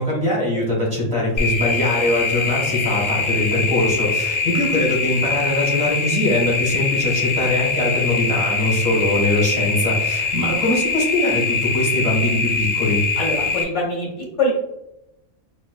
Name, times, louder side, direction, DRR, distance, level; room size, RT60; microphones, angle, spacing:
voice 1, 0.0-13.0, left 1 dB, 30° right, -4 dB, 1.3 m, -22 dB
sound 1, 1.4-13.6, left 4 dB, 55° left, 0.7 m, -23 dB
voice 2, 13.2-14.5, left 2 dB, 75° left, -3 dB, 1.5 m, -23 dB
5.5 x 2.1 x 2.3 m, 0.87 s
omnidirectional pair, 1.3 m